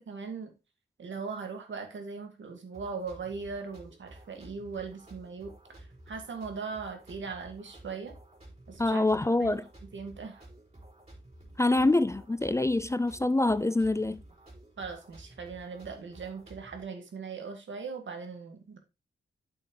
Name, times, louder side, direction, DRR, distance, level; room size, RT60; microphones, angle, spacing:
voice 1, 0.1-0.5 1.0-8.1 8.7-9.5 9.9-10.4 14.8-18.8, right 5 dB, 75° right, 2.1 m, -39 dB
sound 1, 2.7-16.8, right 1 dB, 30° right, 4.2 m, -52 dB
voice 2, 8.8-9.6 11.6-14.2, left 2 dB, 15° left, 0.4 m, -25 dB
9.1 x 6.3 x 3.2 m
wide cardioid pair, 105°, 20 cm